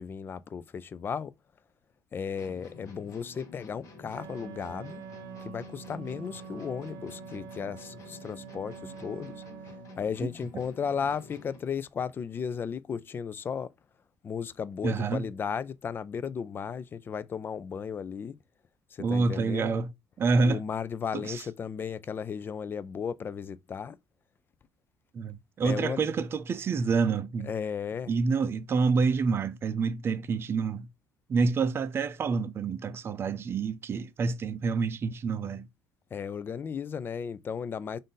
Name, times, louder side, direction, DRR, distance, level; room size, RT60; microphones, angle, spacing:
voice 1, 0.0-1.3 2.1-5.0 5.4-9.4 10.0-13.7 14.2-18.3 18.9-19.8 20.4-24.0 25.6-26.0 27.4-28.1 36.1-38.0, left 6 dB, 30° left, 0.3 m, -35 dB
sound 1, 2.4-11.8, left 2 dB, 50° left, 1.3 m, -50 dB
Wind instrument woodwind instrument, 4.1-10.2, right 6 dB, 70° right, 0.8 m, -46 dB
voice 2, 14.8-15.3 19.0-19.9 20.2-20.6 21.1-21.4 25.1-27.5 28.1-30.9 31.3-35.7, right 4 dB, 35° right, 0.5 m, -28 dB
3.7 x 2.6 x 3.8 m
cardioid pair, 115°, 7 cm